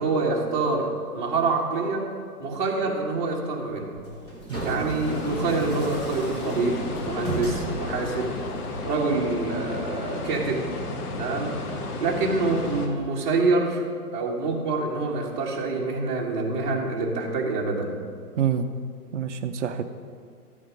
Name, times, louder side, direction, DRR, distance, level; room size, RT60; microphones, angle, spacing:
voice 1, 0.0-2.1 2.4-4.0 4.6-8.4 8.8-10.7 11.2-11.6 12.0-13.8 14.1-18.0, right 3 dB, 30° right, -3 dB, 1.9 m, -26 dB
sound 1, 3.8-8.8, right 2 dB, 10° left, 1.4 m, -34 dB
voice 2, 4.5-4.9 18.4-18.7 19.1-19.8, right 8 dB, 50° right, 8 dB, 0.8 m, -27 dB
sound 2, 5.0-12.9, left 2 dB, 75° left, 1.9 m, -33 dB
12.5 x 8.6 x 5.2 m, 2.1 s
hypercardioid pair, 165°, 46 cm